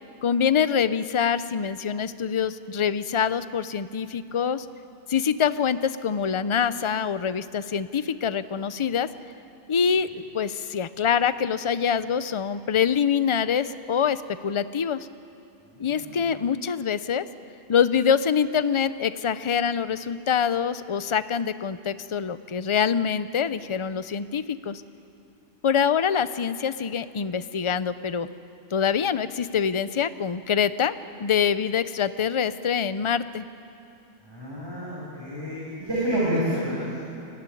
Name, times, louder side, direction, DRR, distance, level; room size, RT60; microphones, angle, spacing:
voice 1, 0.2-4.7 5.1-9.1 9.7-15.1 15.8-17.2 17.7-24.8 25.6-28.3 28.7-33.5, left 7 dB, 40° left, 13 dB, 0.4 m, -25 dB
voice 2, 15.7-16.3 34.2-36.9, equal, 20° right, -9 dB, 7.5 m, -29 dB
24.0 x 16.0 x 10.0 m, 2.8 s
omnidirectional pair, 1.3 m